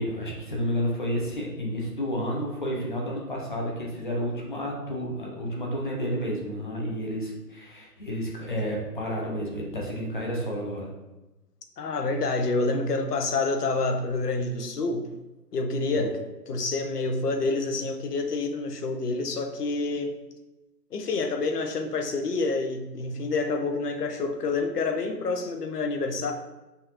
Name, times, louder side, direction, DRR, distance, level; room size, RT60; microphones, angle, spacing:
voice 1, 0.0-10.9 15.9-16.1, equal, 30° left, -2 dB, 0.7 m, -31 dB
voice 2, 11.8-15.1 15.5-20.2 20.9-26.3, left 3 dB, 65° left, 5 dB, 0.7 m, -28 dB
5.5 x 2.5 x 2.9 m, 1.0 s
hypercardioid pair, 160°, 50 cm